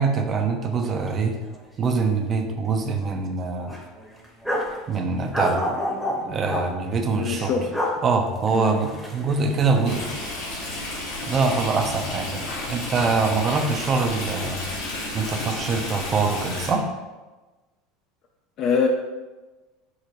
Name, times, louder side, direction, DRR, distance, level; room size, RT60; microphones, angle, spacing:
voice 1, 0.0-1.3 1.8-3.7 4.9-5.6 6.3-7.5 8.0-10.1 11.3-14.7 15.1-16.8, right 4 dB, 35° right, 5 dB, 0.5 m, -24 dB
sound 1, 1.0-1.2 1.4-1.6 2.0-2.7 3.0-3.1 3.7-4.8 5.3-6.7 7.5-7.9 8.4-10.3 10.6-11.4, left 1 dB, ahead, 0.8 m, -29 dB
voice 2, 7.2-7.8 8.5-8.8 18.6-18.9, left 6 dB, 50° left, 2 dB, 0.3 m, -23 dB
Stream, 9.8-16.7, left 2 dB, 75° left, 1.0 m, -32 dB
4.8 x 2.1 x 2.8 m, 1.2 s
hypercardioid pair, 90°, 0 cm